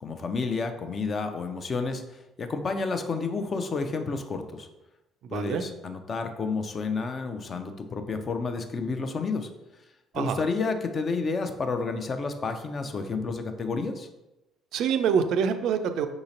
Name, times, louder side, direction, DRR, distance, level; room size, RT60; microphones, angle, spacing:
voice 1, 0.0-2.0 2.4-4.7 5.3-9.5 10.1-14.1, left 4 dB, 40° left, 7 dB, 0.5 m, -30 dB
voice 2, 5.2-5.6 10.1-10.4 14.7-16.1, right 7 dB, 60° right, 8 dB, 0.3 m, -25 dB
4.9 x 3.9 x 2.6 m, 0.97 s
figure-of-eight pair, 50°, 0 cm